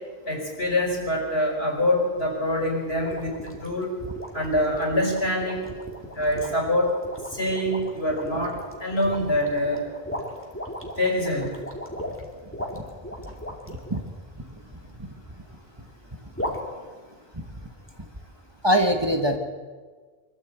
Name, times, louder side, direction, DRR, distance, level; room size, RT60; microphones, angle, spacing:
voice 1, 0.3-3.9 4.3-5.7 6.1-6.9 7.3-9.8 11.0-11.6, left 1 dB, 70° left, -1 dB, 5.5 m, -25 dB
sound 1, 3.0-14.0 16.3-16.6, left 1 dB, 10° left, 2.7 m, -36 dB
voice 2, 13.7-14.0 17.4-17.5 18.6-19.4, equal, 25° right, 4 dB, 1.6 m, -22 dB
24.0 x 13.5 x 8.5 m, 1.5 s
omnidirectional pair, 1.1 m